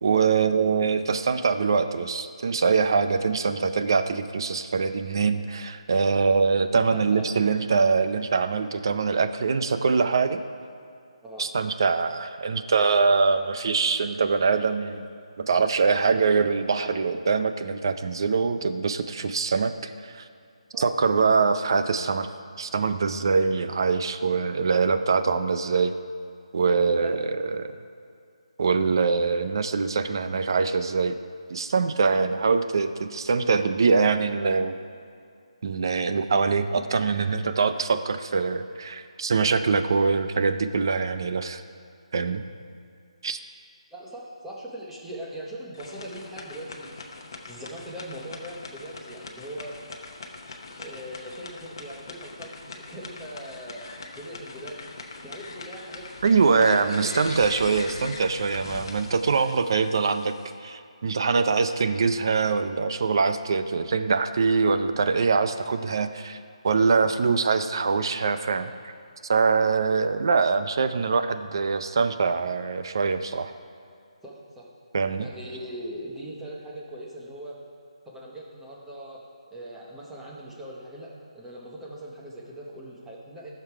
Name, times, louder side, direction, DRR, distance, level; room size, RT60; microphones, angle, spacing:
voice 1, 0.0-10.4 11.4-15.0 15.4-20.3 20.8-22.3 22.6-25.9 26.5-27.7 28.6-31.2 31.5-34.7 35.6-41.6 42.1-42.4 43.2-43.4 56.2-60.3 60.6-66.4 66.6-68.7 69.3-73.5 74.9-75.3, right 4 dB, 40° right, 10 dB, 0.5 m, -23 dB
voice 2, 6.7-7.3 11.2-11.5 20.7-21.0 26.8-27.1 32.1-32.3 43.9-46.9 47.5-49.7 50.8-53.8 54.1-54.9 55.2-56.0 56.7-57.2 74.2-74.7 75.2-77.6 78.0-79.2 79.5-83.5, right 1 dB, 5° right, -5 dB, 0.9 m, -40 dB
sound 1, 45.7-60.6, left 3 dB, 40° left, 0.9 m, -42 dB
13.0 x 6.7 x 4.8 m, 2.4 s
hypercardioid pair, 175°, 4 cm